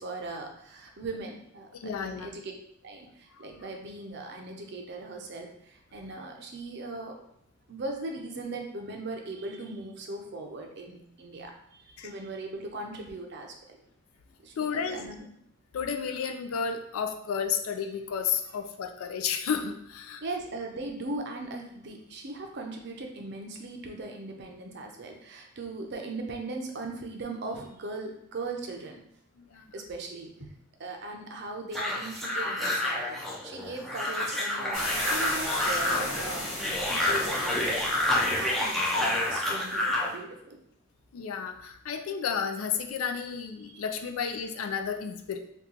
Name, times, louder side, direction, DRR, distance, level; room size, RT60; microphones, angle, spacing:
voice 1, 0.0-2.5 2.8-7.2 7.7-13.8 14.4-15.2 20.2-29.0 29.7-30.5 30.8-36.5 36.9-40.6 43.6-43.8, right 2 dB, 55° right, 2 dB, 0.5 m, -39 dB
voice 2, 1.7-2.3 3.4-3.5 12.0-12.1 14.6-15.0 15.7-20.2 29.4-29.7 41.1-45.4, left 6 dB, 85° left, 5 dB, 0.4 m, -32 dB
sound 1, 31.7-40.1, left 1 dB, ahead, 0.4 m, -29 dB
sound 2, 34.7-39.9, left 1 dB, 25° left, 1.2 m, -36 dB
2.8 x 2.3 x 3.7 m, 0.71 s
head